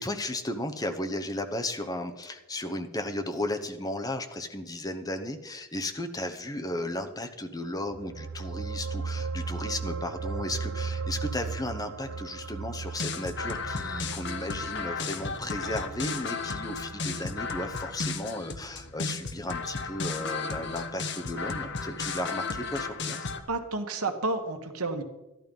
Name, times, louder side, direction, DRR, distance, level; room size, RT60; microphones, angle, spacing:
voice 1, 0.0-23.3, left 1 dB, 15° left, 6 dB, 0.9 m, -35 dB
sound 1, 7.7-18.5 18.8-18.9, right 4 dB, 60° right, 0.6 m, -37 dB
sound 2, 12.9-23.4, left 4 dB, 55° left, 1.0 m, -34 dB
voice 2, 23.5-25.0, right 3 dB, 85° right, 6 dB, 1.5 m, -30 dB
13.5 x 11.5 x 5.4 m, 1.0 s
head